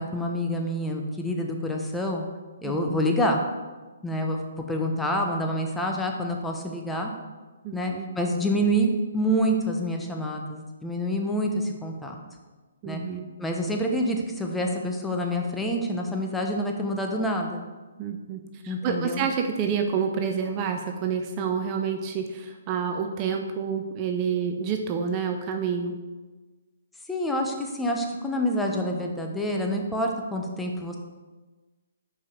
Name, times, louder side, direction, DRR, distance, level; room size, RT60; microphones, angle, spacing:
voice 1, 0.0-2.2 2.6-3.4 4.0-4.4 4.7-7.1 7.7-12.2 12.9-13.0 13.4-17.6 18.7-19.3 27.1-31.0, equal, 5° left, 1 dB, 0.8 m, -27 dB
voice 2, 2.6-3.0 7.6-8.1 12.8-13.3 18.0-25.9, right 6 dB, 30° right, 5 dB, 0.5 m, -28 dB
5.4 x 4.8 x 5.3 m, 1.3 s
hypercardioid pair, 140°, 0 cm